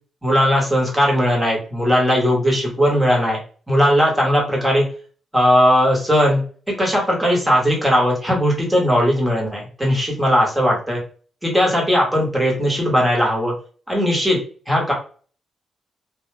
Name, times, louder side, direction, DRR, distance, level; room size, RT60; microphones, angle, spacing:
voice 1, 0.2-3.4 3.7-4.9 5.3-6.4 6.8-11.0 11.4-13.5 13.9-14.4 14.7-14.9, equal, 5° right, -2 dB, 1.2 m, -18 dB
2.3 x 2.3 x 3.1 m, 0.40 s
cardioid pair, 115°, 0 cm